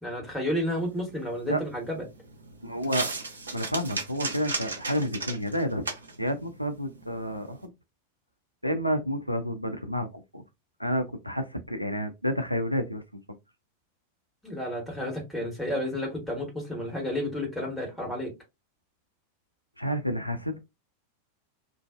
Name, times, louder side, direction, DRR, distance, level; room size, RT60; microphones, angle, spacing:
voice 1, 0.0-2.0 14.4-18.3, left 1 dB, ahead, 1.3 m, -31 dB
sound 1, 0.8-7.7, right 3 dB, 75° right, 0.6 m, -37 dB
voice 2, 2.6-3.1 3.5-5.8 6.2-7.7 8.6-10.4 10.8-13.0 19.8-20.6, equal, 90° left, 0.4 m, -30 dB
2.5 x 2.2 x 2.4 m
figure-of-eight pair, 90°, 0 cm